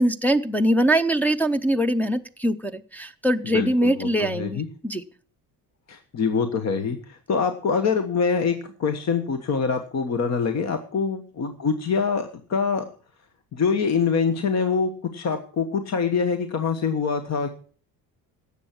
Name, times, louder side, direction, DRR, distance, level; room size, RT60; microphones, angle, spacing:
voice 1, 0.0-5.0, right 1 dB, 5° left, 3 dB, 0.6 m, -22 dB
voice 2, 3.5-4.7 5.9-12.8 13.5-17.5, left 5 dB, 45° left, 8 dB, 1.3 m, -25 dB
17.0 x 7.2 x 6.0 m, 0.41 s
cardioid pair, 140°, 37 cm